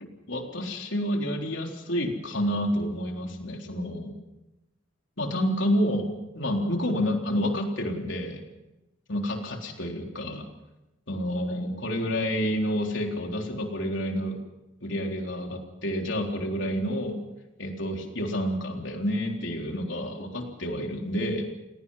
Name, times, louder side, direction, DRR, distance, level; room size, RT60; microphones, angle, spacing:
voice 1, 0.3-4.1 5.2-6.1 6.3-8.4 9.1-10.4 11.1-14.4 14.8-17.2 17.6-21.5, equal, 65° left, 2 dB, 3.8 m, -29 dB
29.5 x 18.0 x 5.7 m, 0.96 s
head